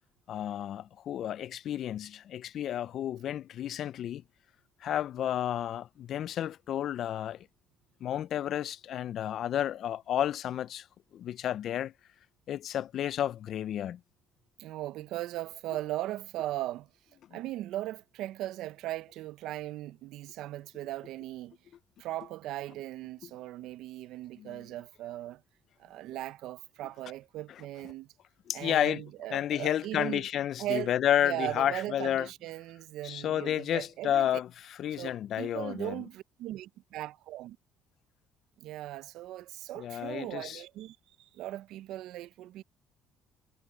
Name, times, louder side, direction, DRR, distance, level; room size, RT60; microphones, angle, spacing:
voice 1, 0.3-4.2 4.8-7.4 8.0-10.8 11.1-11.9 12.5-14.0 24.4-24.6 28.5-29.0 29.3-32.3 33.0-34.5 34.8-36.0 39.8-40.6, left 11 dB, 65° left, 0.6 m, -31 dB
voice 2, 14.6-16.9 17.3-21.6 22.0-25.4 25.8-28.1 28.5-30.3 30.6-30.9 31.2-34.3 35.0-37.6 38.6-42.6, right 15 dB, 75° right, 0.8 m, -38 dB
supercardioid pair, 70°, 0 cm